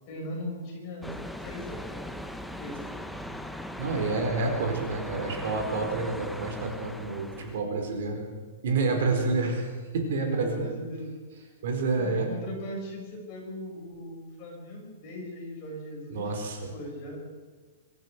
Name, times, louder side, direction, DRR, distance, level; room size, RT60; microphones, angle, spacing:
voice 1, 0.1-1.1 1.4-2.1 2.6-3.2 8.9-9.4 10.2-11.1 12.0-16.4 16.7-17.2, equal, 25° left, -1 dB, 5.8 m, -39 dB
sound 1, 1.0-7.6, left 1 dB, ahead, 0.6 m, -39 dB
voice 2, 3.8-8.2 8.6-10.7 11.6-12.3 16.1-16.7, right 3 dB, 55° right, 4 dB, 4.4 m, -29 dB
24.5 x 13.5 x 8.3 m, 1.4 s
hypercardioid pair, 180°, 0 cm